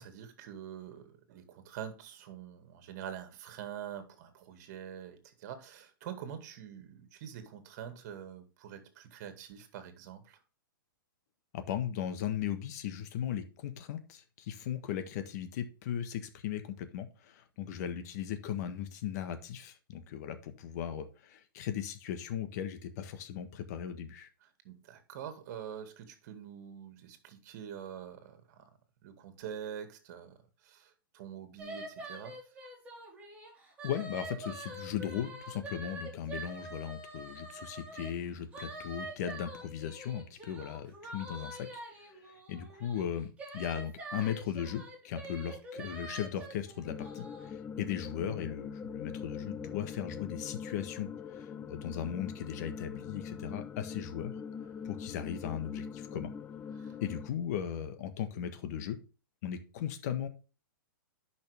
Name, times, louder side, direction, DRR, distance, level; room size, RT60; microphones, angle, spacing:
voice 1, 0.0-10.4 24.6-28.6 29.0-30.3 30.6-32.4 56.8-57.0, right 9 dB, 45° right, 2.1 m, -45 dB
voice 2, 11.5-24.3 33.8-41.7 42.5-51.1 51.4-54.3 54.8-56.3 57.0-59.0 59.4-60.3, left 9 dB, 50° left, 1.4 m, -37 dB
sound 1, 31.6-38.1 38.5-47.5, right 2 dB, 10° right, 4.1 m, -45 dB
sound 2, 46.8-57.3, left 6 dB, 15° left, 0.3 m, -43 dB
10.5 x 5.7 x 3.5 m
hypercardioid pair, 145°, 12 cm